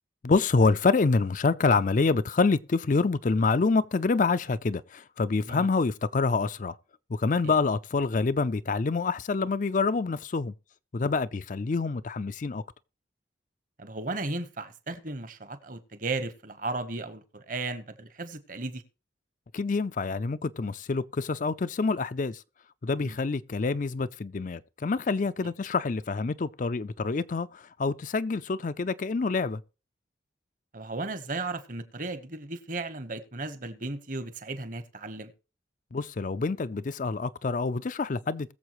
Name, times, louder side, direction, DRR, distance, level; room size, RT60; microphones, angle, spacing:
voice 1, 0.2-6.8 7.1-10.5 10.9-12.6 19.5-22.4 22.8-29.6 35.9-38.5, left 4 dB, 45° left, 0.4 m, -27 dB
voice 2, 13.8-18.8 23.0-23.2 25.4-25.5 30.7-35.3, right 3 dB, 45° right, 1.2 m, -35 dB
21.0 x 7.2 x 3.1 m
head